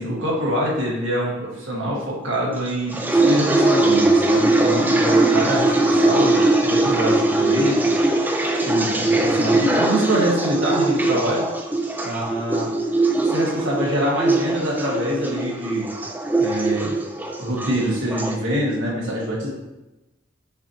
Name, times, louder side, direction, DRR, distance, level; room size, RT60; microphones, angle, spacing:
voice 1, 0.0-8.0 8.6-11.4 12.0-12.7 13.2-15.9 16.4-16.9 17.4-19.5, equal, 85° right, -4 dB, 1.3 m, -25 dB
sound 1, 2.7-18.4, right 2 dB, 10° right, 0.3 m, -20 dB
6.1 x 2.7 x 2.7 m, 1.0 s
head